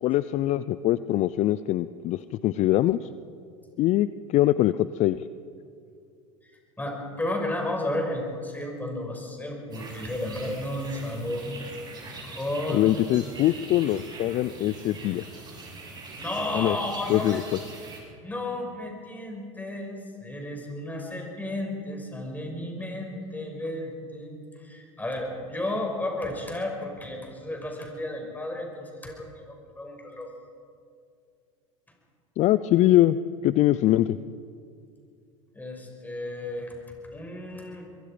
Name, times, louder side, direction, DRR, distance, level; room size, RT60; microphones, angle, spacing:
voice 1, 0.0-3.0 3.8-5.2 12.7-15.2 16.5-16.8 17.1-17.4 32.4-33.2 33.4-34.2, left 14 dB, 45° left, 15 dB, 0.5 m, -23 dB
voice 2, 6.8-11.5 12.2-12.8 16.2-17.4 18.2-30.3 35.5-36.8 37.1-37.9, left 1 dB, 10° left, 1 dB, 5.9 m, -33 dB
sound 1, 9.7-18.0, right 3 dB, 25° right, 6.8 m, -42 dB
23.5 x 22.5 x 5.2 m, 2.4 s
hypercardioid pair, 95°, 16 cm